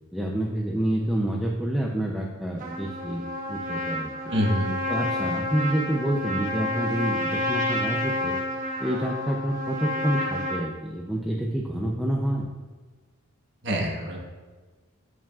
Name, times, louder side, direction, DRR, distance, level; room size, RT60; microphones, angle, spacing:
voice 1, 0.1-4.1 4.9-8.4 8.8-12.5, right 1 dB, ahead, -2 dB, 0.5 m, -28 dB
Trumpet, 2.6-10.6, left 1 dB, 35° right, 1.0 m, -29 dB
voice 2, 4.3-4.8 13.6-14.2, equal, 55° right, -1 dB, 1.4 m, -25 dB
12.5 x 4.9 x 2.4 m, 1.4 s
head